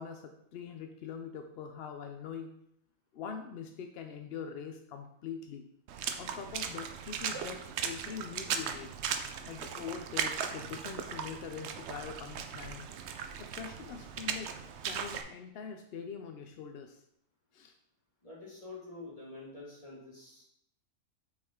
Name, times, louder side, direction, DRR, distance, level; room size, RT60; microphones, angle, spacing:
voice 1, 0.0-2.5 3.1-5.7 6.2-8.9 9.5-12.9 13.4-14.6 14.8-17.0 17.5-17.7, left 7 dB, 70° left, 6 dB, 0.6 m, -43 dB
Water / Splash splatter, 5.9-15.2, right 7 dB, 65° right, 0.7 m, -38 dB
voice 2, 18.2-20.4, left 3 dB, 25° left, -6 dB, 2.3 m, -47 dB
6.1 x 4.9 x 3.6 m, 0.75 s
omnidirectional pair, 1.5 m